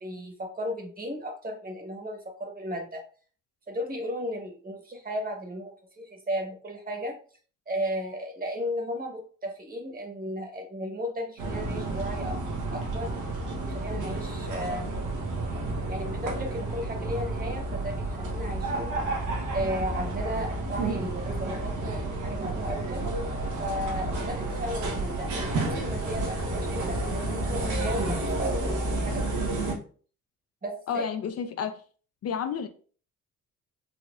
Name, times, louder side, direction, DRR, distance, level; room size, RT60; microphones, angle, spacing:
voice 1, 0.0-3.0 3.7-7.2 7.7-12.4 12.7-13.1 13.6-14.9 15.9-18.9 19.5-23.0 23.6-29.4 30.6-31.1, equal, 30° right, 1.1 m, -35 dB
sound 1, 11.4-29.7, right 2 dB, 90° right, 1.2 m, -30 dB
voice 2, 30.9-31.8 32.2-32.7, left 7 dB, 55° left, 0.5 m, -30 dB
3.9 x 3.0 x 2.4 m
cardioid pair, 90°, 30 cm